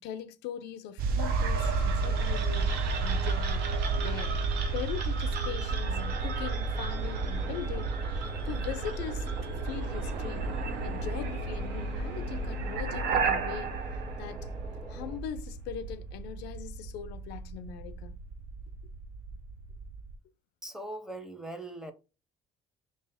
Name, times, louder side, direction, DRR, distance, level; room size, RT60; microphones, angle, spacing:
voice 1, 0.0-2.7 3.0-4.3 4.7-10.5 10.8-14.4 14.9-18.2, left 10 dB, 90° left, 0.4 m, -41 dB
sound 1, 1.0-20.2, right 3 dB, 60° right, 0.5 m, -33 dB
sound 2, 1.2-15.1, right 4 dB, 90° right, 0.8 m, -36 dB
sound 3, 5.8-15.2, right 2 dB, 40° right, 1.6 m, -46 dB
voice 2, 20.6-21.9, right 1 dB, 5° right, 0.6 m, -40 dB
3.2 x 2.8 x 3.4 m
cardioid pair, 110°, 17 cm